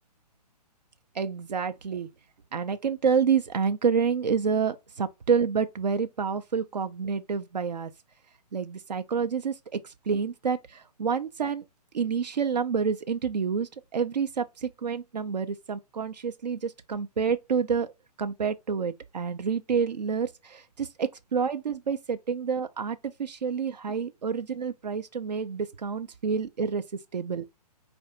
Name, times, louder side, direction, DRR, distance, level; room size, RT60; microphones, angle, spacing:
voice 1, 1.1-2.1 2.5-7.9 8.5-11.6 11.9-17.9 18.2-27.5, right 6 dB, 85° right, 0.5 m, -28 dB
4.3 x 2.6 x 3.8 m
figure-of-eight pair, 135°, 21 cm